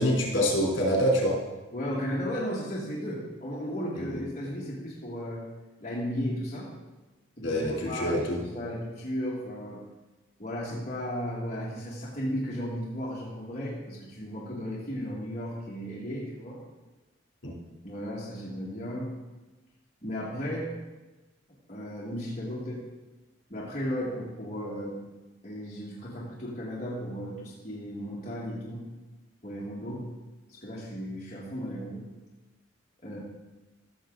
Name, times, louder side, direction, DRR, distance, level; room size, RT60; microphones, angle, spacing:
voice 1, 0.0-1.4 4.1-4.2 7.4-8.4 17.4-17.5, equal, 70° left, -3 dB, 3.4 m, -25 dB
voice 2, 1.7-5.5 5.8-6.7 7.4-9.8 10.4-16.6 17.8-19.1 20.0-20.7 21.7-22.8 23.5-25.0 25.4-28.9 29.4-30.1 30.5-32.1 33.0-33.2, equal, 35° left, -7 dB, 1.9 m, -35 dB
15.0 x 6.7 x 3.9 m, 1.1 s
head